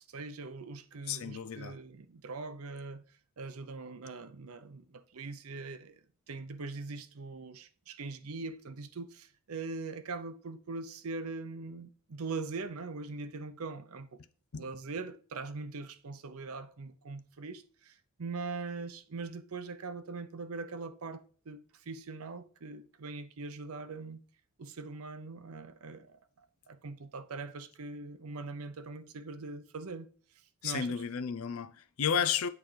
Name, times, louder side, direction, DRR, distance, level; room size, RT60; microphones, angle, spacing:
voice 1, 0.1-3.1 3.4-14.2 14.5-24.2 24.6-26.2 26.7-30.1 30.6-31.0, right 3 dB, 80° right, 0.7 m, -42 dB
voice 2, 1.1-1.8 14.5-14.7 30.6-32.5, left 7 dB, 70° left, 0.5 m, -32 dB
8.2 x 4.4 x 3.3 m
head